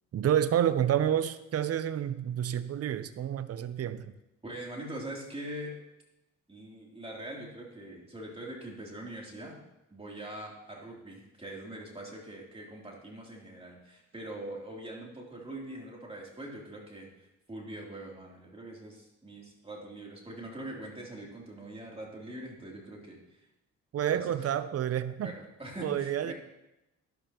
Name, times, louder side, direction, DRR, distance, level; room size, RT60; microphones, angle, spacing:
voice 1, 0.1-4.1 23.9-25.3 25.8-26.3, right 10 dB, 55° right, 13 dB, 0.7 m, -29 dB
voice 2, 4.4-5.7 6.5-9.6 9.9-17.1 17.5-23.2 24.1-24.5 25.2-26.3, right 1 dB, 20° right, -2 dB, 3.2 m, -43 dB
12.0 x 11.5 x 3.0 m, 0.93 s
cardioid pair, 90°, 30 cm